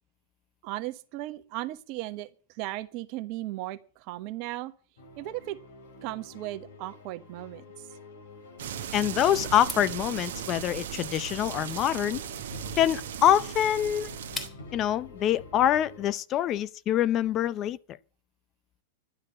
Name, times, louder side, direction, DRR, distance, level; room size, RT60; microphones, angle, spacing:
voice 1, 0.6-4.7 5.2-5.6 6.0-7.6, right 16 dB, 50° right, 1.2 m, -36 dB
sound 1, 5.0-16.1, left 2 dB, 75° left, 4.5 m, -48 dB
sound 2, 8.6-14.5, right 9 dB, 65° right, 1.6 m, -37 dB
voice 2, 8.9-12.2 12.7-14.1 14.7-17.8, left 11 dB, 35° left, 0.6 m, -25 dB
sound 3, 9.6-14.9, left 3 dB, 15° left, 2.9 m, -44 dB
12.0 x 9.6 x 8.4 m
hypercardioid pair, 105°, 0 cm